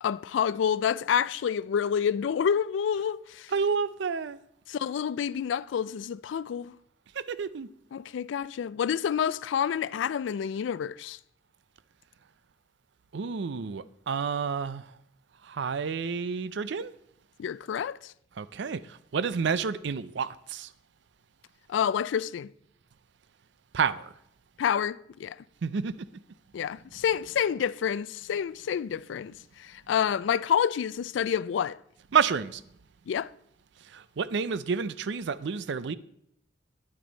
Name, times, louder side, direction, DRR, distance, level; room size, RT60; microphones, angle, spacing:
voice 1, 0.0-3.5 4.7-6.8 7.9-11.2 17.4-18.1 21.7-22.5 24.6-25.4 26.5-31.8 33.1-33.3, left 8 dB, 70° left, 0.3 m, -28 dB
voice 2, 3.5-4.4 7.2-7.7 13.1-14.9 15.4-16.9 18.4-20.7 23.7-24.1 25.6-26.1 32.1-32.6 33.9-35.9, right 6 dB, 65° right, 0.5 m, -29 dB
9.7 x 9.3 x 4.0 m
head